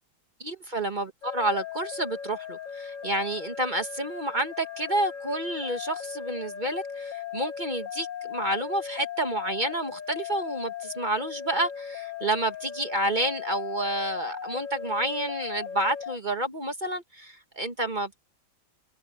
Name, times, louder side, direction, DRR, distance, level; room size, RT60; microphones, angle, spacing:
voice 1, 0.4-18.2, right 1 dB, 25° right, 1.6 m, -29 dB
sound 1, 1.2-16.2, left 8 dB, 50° left, 1.2 m, -38 dB
omnidirectional pair, 2.1 m